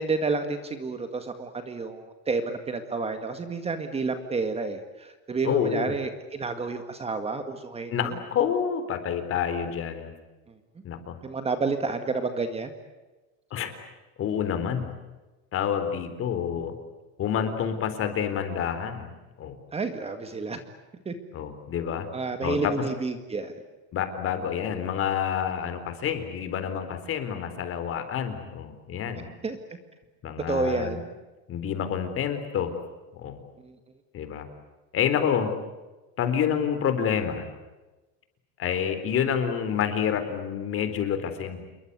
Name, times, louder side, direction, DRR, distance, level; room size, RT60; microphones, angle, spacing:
voice 1, 0.0-8.1 11.2-12.7 19.7-20.6 21.1-21.2 22.1-23.5 29.4-29.6 30.4-31.0 33.6-33.8, right 4 dB, 15° right, 8 dB, 1.9 m, -30 dB
voice 2, 5.4-5.9 7.9-10.1 10.8-11.2 13.5-13.7 14.2-14.9 15.5-16.8 17.2-19.1 19.4-19.6 21.3-22.1 22.4-22.7 23.9-29.3 30.2-31.0 31.5-32.8 33.2-33.4 34.1-34.5 34.9-35.5 36.2-37.5 38.6-41.7, left 8 dB, 40° left, 9 dB, 4.0 m, -28 dB
28.5 x 23.0 x 8.3 m, 1.1 s
cardioid pair, 160°, 35 cm